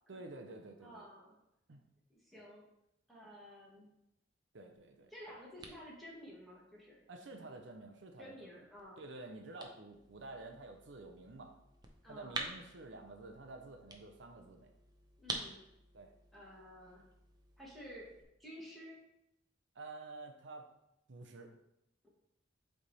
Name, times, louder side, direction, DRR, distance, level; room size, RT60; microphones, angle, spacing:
voice 1, 0.1-1.0 1.7-1.8 4.5-5.1 7.1-8.5 9.0-11.5 12.1-14.7 15.9-16.1 19.7-20.7 21.1-21.5, right 2 dB, 70° right, 4 dB, 0.7 m, -50 dB
voice 2, 0.8-1.3 2.1-2.6 3.1-3.9 5.1-7.0 8.2-9.0 12.0-12.4 15.2-15.6 16.3-17.0 17.6-18.1 18.4-18.9, equal, ahead, -5 dB, 1.7 m, -52 dB
sound 1, 4.7-18.2, right 3 dB, 20° right, 0.7 m, -50 dB
7.8 x 3.5 x 4.1 m, 0.83 s
head